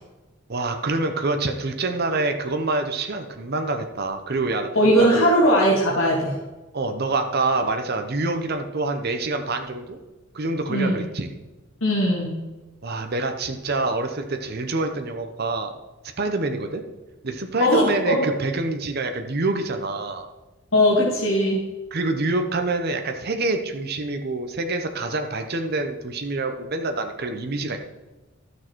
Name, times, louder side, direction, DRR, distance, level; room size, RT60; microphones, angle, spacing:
voice 1, 0.5-4.7 5.0-5.3 6.7-10.0 10.3-11.3 12.8-15.7 16.2-16.8 17.2-20.2 21.9-27.8, right 2 dB, 50° right, 6 dB, 0.8 m, -26 dB
voice 2, 4.8-6.4 10.7-11.0 11.8-12.4 17.6-18.2 20.7-21.6, equal, 85° left, -4 dB, 1.9 m, -19 dB
12.5 x 6.3 x 4.6 m, 1.1 s
head